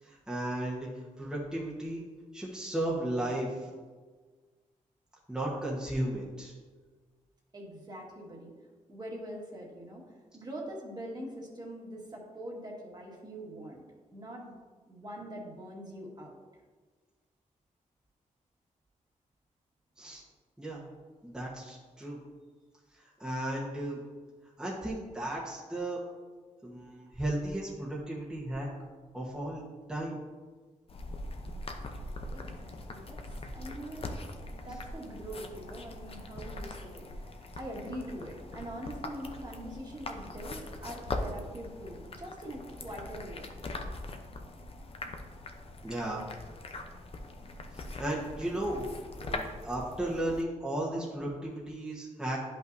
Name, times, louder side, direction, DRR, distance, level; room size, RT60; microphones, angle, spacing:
voice 1, 0.0-2.0 2.3-3.7 5.3-6.5 20.0-20.2 20.6-20.8 21.2-22.2 22.9-24.0 24.6-26.0 26.6-28.7 29.1-30.2 45.8-46.2 47.7-48.9 49.2-52.4, right 1 dB, 5° right, -5 dB, 1.2 m, -35 dB
voice 2, 7.5-8.5 8.9-10.0 10.3-13.8 14.1-14.6 14.9-16.4 32.3-33.2 33.5-34.1 34.5-43.5, right 1 dB, 30° right, -2 dB, 1.7 m, -43 dB
sound 1, 30.9-50.4, left 2 dB, 45° left, 0.7 m, -42 dB
10.5 x 5.5 x 2.7 m, 1.4 s
cardioid pair, 100°, 14 cm